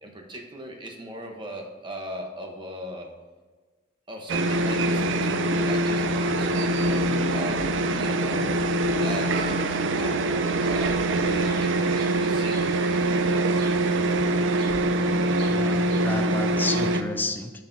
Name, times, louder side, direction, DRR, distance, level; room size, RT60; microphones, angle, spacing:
voice 1, 0.0-3.1 4.1-7.6 7.9-9.5 9.9-12.9, right 1 dB, 25° right, 1 dB, 0.9 m, -38 dB
sound 1, 4.3-17.0, right 2 dB, 85° right, 0.5 m, -24 dB
sound 2, 6.0-11.6, equal, 40° left, 2.2 m, -39 dB
Bird, 10.6-16.9, right 1 dB, 50° right, 2.1 m, -44 dB
voice 2, 15.5-17.5, left 2 dB, 10° left, 6 dB, 0.4 m, -31 dB
9.3 x 6.5 x 2.7 m, 1.3 s
head